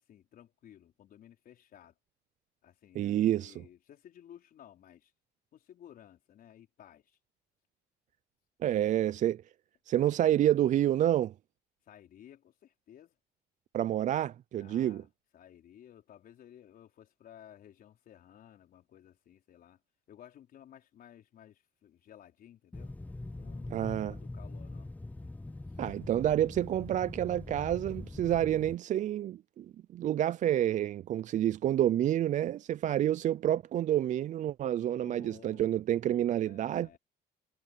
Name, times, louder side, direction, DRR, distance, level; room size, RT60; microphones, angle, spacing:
voice 1, 0.0-1.9 2.6-5.1 5.5-7.2 8.7-8.8 11.9-13.2 14.6-15.1 15.3-19.8 20.1-22.9 23.3-24.9 25.7-25.8 35.0-35.8 36.4-37.0, left 10 dB, 60° left, 4.8 m, -56 dB
voice 2, 3.0-3.6 8.6-9.4 9.9-11.3 13.7-15.0 23.7-24.1 25.8-37.0, right 12 dB, 50° right, 0.4 m, -29 dB
sound 1, 22.7-28.8, left 2 dB, 10° left, 0.6 m, -43 dB
cardioid pair, 110°, 17 cm